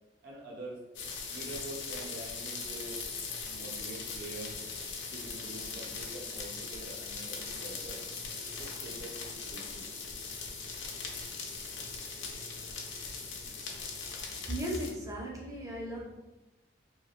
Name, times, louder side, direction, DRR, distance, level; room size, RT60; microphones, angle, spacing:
voice 1, 0.2-0.8 1.3-3.1 3.5-4.6 5.1-8.0 8.6-9.9, right 2 dB, 60° right, -3 dB, 0.7 m, -45 dB
sound 1, 0.9-14.9, left 4 dB, 80° left, 0.5 m, -40 dB
voice 2, 14.3-16.1, equal, 20° right, -4 dB, 0.5 m, -37 dB
2.9 x 2.6 x 2.4 m, 1.1 s
head